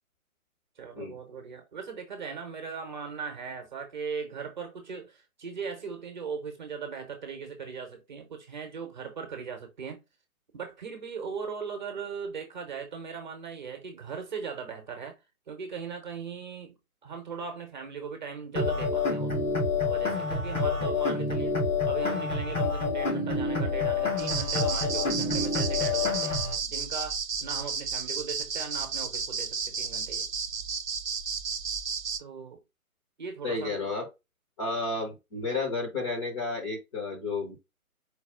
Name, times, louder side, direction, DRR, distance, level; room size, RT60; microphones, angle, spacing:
voice 1, 0.8-10.0 10.5-15.2 15.5-19.3 19.8-21.5 21.8-30.3 32.2-32.6 33.2-33.7, right 6 dB, 30° right, 1.0 m, -39 dB
sound 1, 18.6-26.6, left 3 dB, 75° left, 2.6 m, -28 dB
sound 2, 24.2-32.2, right 6 dB, 65° right, 0.7 m, -33 dB
voice 2, 33.4-34.1 34.6-37.6, left 3 dB, 20° left, 0.9 m, -32 dB
4.7 x 2.3 x 3.4 m
figure-of-eight pair, 145°, 43 cm